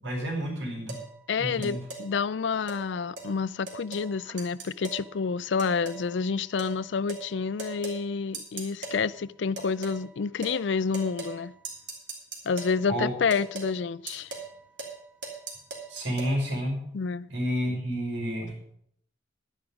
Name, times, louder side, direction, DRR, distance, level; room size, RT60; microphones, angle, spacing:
voice 1, 0.0-1.0 1.4-1.8 12.9-13.1 15.9-16.8 17.3-18.5, equal, 90° right, 5.4 m, -30 dB
sound 1, 0.9-1.1 1.6-2.1 2.7-2.8 3.2-3.3 3.7-4.1 4.4-5.1 5.6-6.1 6.6-6.8 7.1-7.3 7.6-8.0 8.3-9.0 9.6-10.0 10.4-10.6 10.9-11.4 11.6-12.8 13.3-13.7 14.1-14.5 14.8-15.0 15.2-16.3, right 4 dB, 75° right, 3.0 m, -38 dB
voice 2, 1.3-11.5 12.4-14.3 16.9-17.3, left 5 dB, 70° left, 0.4 m, -29 dB
11.0 x 10.5 x 5.1 m
head